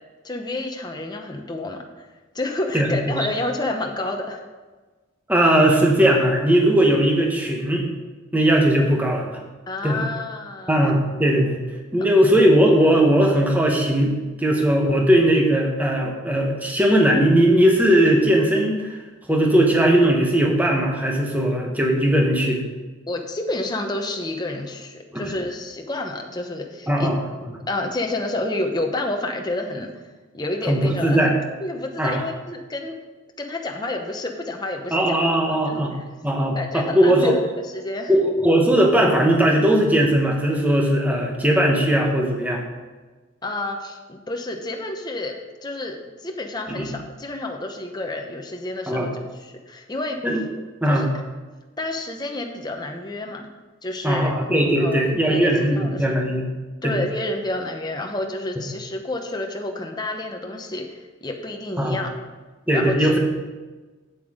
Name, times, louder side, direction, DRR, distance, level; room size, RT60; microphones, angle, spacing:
voice 1, 0.2-2.1 2.3-4.4 9.7-10.8 23.1-27.1 27.7-29.9 30.3-31.3 31.6-33.0 33.4-35.2 35.7-35.8 36.5-37.4 37.7-38.1 43.4-45.4 45.6-49.1 49.4-50.2 50.9-51.1 51.8-53.5 53.8-54.3 54.8-56.0 56.8-62.1 62.7-63.2, left 2 dB, 20° left, 3 dB, 0.8 m, -29 dB
voice 2, 2.7-3.2 5.3-7.8 8.3-9.4 9.8-10.0 10.7-11.6 11.9-19.0 19.3-22.6 25.1-25.3 26.9-27.2 30.7-31.3 32.0-32.2 34.9-35.9 36.2-37.4 38.1-42.6 46.7-46.9 48.9-49.1 50.2-50.4 50.8-51.1 54.0-56.4 56.8-57.0 61.8-62.0 62.7-63.2, right 1 dB, 10° right, 0 dB, 1.1 m, -19 dB
7.9 x 7.9 x 5.0 m, 1.3 s
head